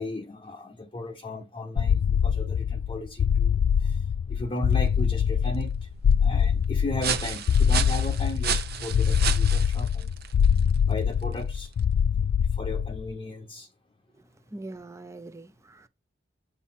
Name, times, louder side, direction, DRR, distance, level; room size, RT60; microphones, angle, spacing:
voice 1, 0.0-4.0 4.3-5.9 6.2-10.1 10.9-11.7 12.5-13.7, left 1 dB, 30° left, 0.8 m, -35 dB
sound 1, 1.8-13.1, left 7 dB, 80° left, 0.3 m, -24 dB
sound 2, 4.6-12.0, right 8 dB, 55° right, 0.8 m, -34 dB
voice 2, 14.1-15.9, right 2 dB, 15° right, 0.5 m, -43 dB
8.2 x 2.8 x 5.7 m
head